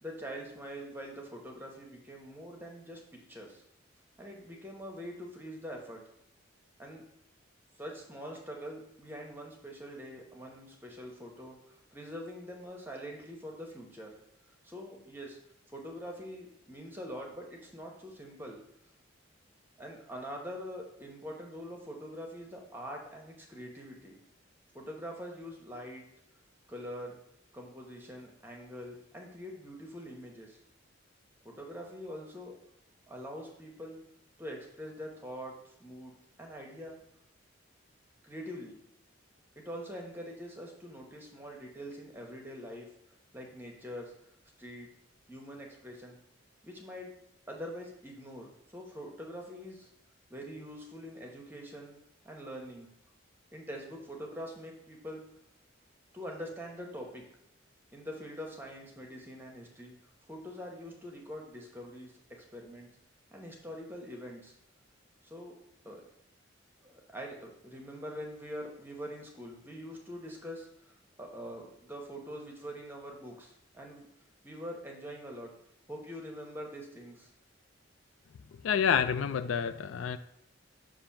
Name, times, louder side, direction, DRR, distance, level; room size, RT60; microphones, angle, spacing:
voice 1, 0.0-3.0 3.3-3.6 4.2-6.0 6.8-7.0 7.8-14.1 14.5-15.4 15.7-18.6 19.8-24.2 24.7-26.0 26.7-27.2 27.5-30.6 31.4-32.5 33.1-34.0 34.4-37.0 38.2-38.8 39.6-42.9 43.3-44.1 44.6-44.9 45.3-46.2 46.6-47.1 47.5-49.9 50.3-52.9 53.5-55.2 56.1-57.3 57.9-59.9 60.3-62.9 63.3-64.5 65.2-65.5 65.8-66.0 66.8-74.1 74.4-75.5 75.9-77.3, equal, 10° right, 0 dB, 0.9 m, -44 dB
voice 2, 78.6-80.2, left 7 dB, 80° left, 12 dB, 0.3 m, -28 dB
6.8 x 2.6 x 5.7 m, 0.75 s
head